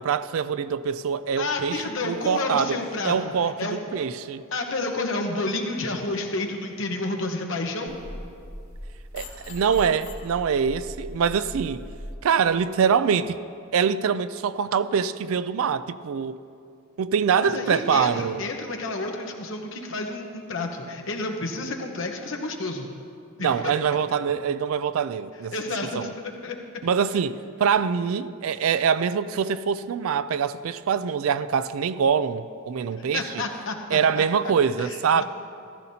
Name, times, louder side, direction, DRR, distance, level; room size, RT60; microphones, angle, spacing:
voice 1, 0.0-2.8 3.0-4.4 9.1-11.9 12.2-13.4 13.7-16.4 17.0-18.4 23.4-25.5 25.8-26.1 26.8-33.4 33.9-35.2, right 6 dB, 75° right, 0.4 m, -24 dB
voice 2, 1.4-3.1 3.6-3.8 4.5-8.0 17.4-22.9 23.4-23.7 25.5-26.6 33.1-34.5 34.8-35.2, left 2 dB, 65° left, 1.1 m, -30 dB
sound 1, 7.9-12.1, left 1 dB, 85° left, 2.3 m, -39 dB
14.5 x 13.5 x 2.8 m
head